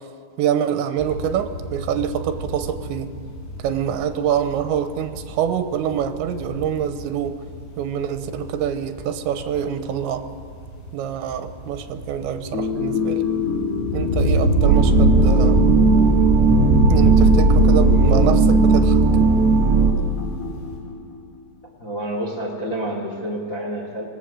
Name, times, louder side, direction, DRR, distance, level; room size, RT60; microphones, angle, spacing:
voice 1, 0.4-3.1 3.6-7.4 7.8-10.3 10.9-13.2 13.9-15.6 16.9-19.0, right 9 dB, 85° right, 8 dB, 3.1 m, -25 dB
sound 1, 1.0-20.8, right 1 dB, 80° left, 7.3 m, -27 dB
sound 2, 12.5-21.3, left 4 dB, 50° left, 2.5 m, -28 dB
sound 3, 14.6-19.9, right 4 dB, 50° right, 1.6 m, -16 dB
voice 2, 21.8-24.0, right 1 dB, 30° left, -1 dB, 1.5 m, -28 dB
25.5 x 18.0 x 6.6 m, 2.3 s
omnidirectional pair, 5.2 m